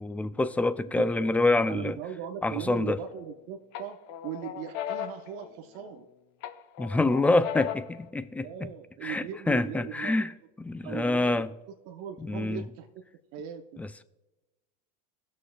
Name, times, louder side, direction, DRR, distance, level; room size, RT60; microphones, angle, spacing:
voice 1, 0.0-2.0 2.4-3.0 6.8-8.7 9.0-10.3 10.6-11.5 12.2-12.6 13.8-14.0, left 2 dB, 5° left, 0.4 m, -26 dB
voice 2, 0.9-1.3 1.7-4.0 4.2-6.0 8.4-10.3 10.8-11.5 11.9-12.9 13.3-13.6, right 9 dB, 55° right, 0.8 m, -39 dB
sound 1, 2.7-3.3 3.7-6.0 6.4-8.0, left 11 dB, 60° left, 0.8 m, -37 dB
19.0 x 6.4 x 2.3 m
supercardioid pair, 110°, 21 cm